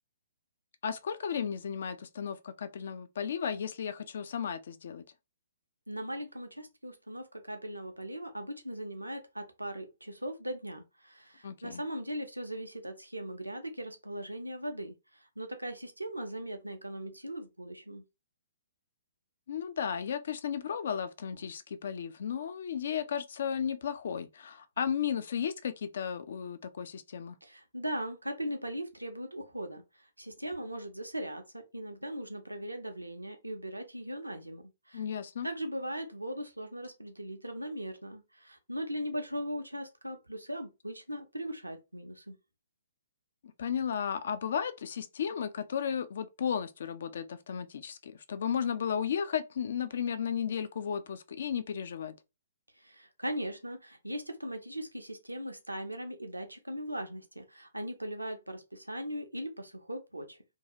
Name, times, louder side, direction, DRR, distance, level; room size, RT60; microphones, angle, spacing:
voice 1, 0.8-5.0 11.4-11.8 19.5-27.4 34.9-35.5 43.6-52.1, left 7 dB, 50° left, 0.4 m, -34 dB
voice 2, 5.9-18.0 27.4-35.0 35.4-42.4 52.8-60.4, equal, 85° right, 0.6 m, -39 dB
2.7 x 2.3 x 2.8 m
figure-of-eight pair, 125°, 0 cm